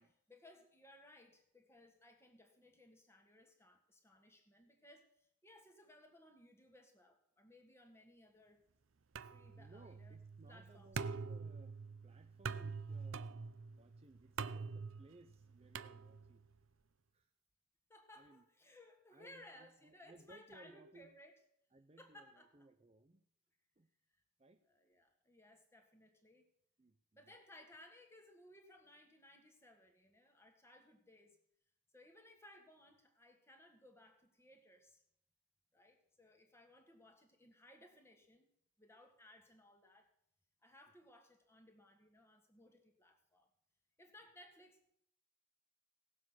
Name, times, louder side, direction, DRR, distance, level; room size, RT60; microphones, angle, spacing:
voice 1, 0.0-8.6 9.2-10.2 10.5-11.0 17.9-21.4 22.0-22.7 24.6-26.5 27.1-31.4 31.9-35.0 35.7-38.5 38.8-40.1 40.6-43.5 44.0-45.0, left 1 dB, 15° left, 3 dB, 1.7 m, -62 dB
sound 1, 9.2-16.5, right 5 dB, 80° right, 0.6 m, -46 dB
voice 2, 9.5-11.8 12.0-16.4 17.1-17.3 18.2-18.4 19.1-21.1 21.7-23.2 23.8-23.9 24.4-24.6 26.8-27.0 27.3-27.4, right 2 dB, 30° right, 7 dB, 0.6 m, -63 dB
18.0 x 7.4 x 6.0 m, 0.70 s
head